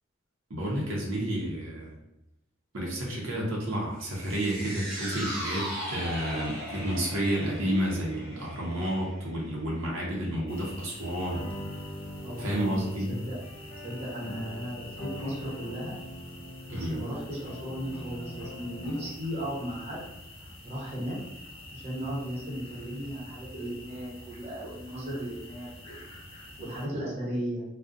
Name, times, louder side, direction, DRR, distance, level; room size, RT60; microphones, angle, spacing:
voice 1, 0.5-2.0 2.7-11.5 12.4-13.2 16.7-17.0, right 1 dB, 85° right, -3 dB, 0.6 m, -30 dB
sound 1, 4.0-10.4 10.8-10.9, equal, ahead, 1.0 m, -39 dB
sound 2, 10.5-26.9, left 1 dB, 30° left, 0.6 m, -47 dB
sound 3, 11.3-19.3, equal, 85° left, 0.7 m, -42 dB
voice 2, 12.2-13.4 13.8-16.0 16.7-20.1 20.6-21.2 21.7-26.0 26.6-27.6, equal, 35° right, -5 dB, 0.8 m, -36 dB
2.4 x 2.1 x 2.4 m, 0.90 s
head